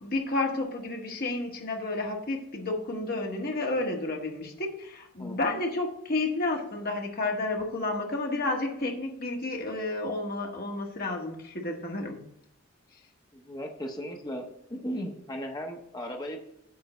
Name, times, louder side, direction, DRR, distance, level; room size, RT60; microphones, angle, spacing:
voice 1, 0.0-12.2, left 2 dB, 50° left, 1 dB, 1.6 m, -31 dB
voice 2, 5.2-5.6 13.3-14.4 14.7-16.4, equal, 20° left, 2 dB, 1.1 m, -36 dB
9.4 x 3.8 x 6.7 m, 0.72 s
head